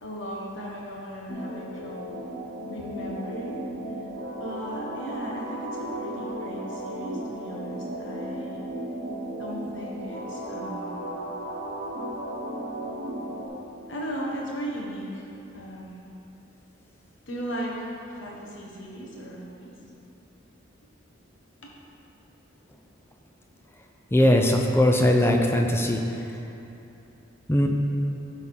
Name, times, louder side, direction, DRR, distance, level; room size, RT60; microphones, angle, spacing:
voice 1, 0.0-2.3 2.7-3.6 4.3-8.6 9.4-11.0 13.9-15.3 15.5-16.1 17.3-19.7 21.6-21.7, equal, 70° left, -3 dB, 1.3 m, -37 dB
sound 1, 1.3-13.5, right 1 dB, 65° right, 1.1 m, -35 dB
voice 2, 24.1-26.0 27.5-27.7, left 1 dB, 10° left, 2 dB, 0.5 m, -20 dB
9.7 x 3.7 x 6.1 m, 2.8 s
head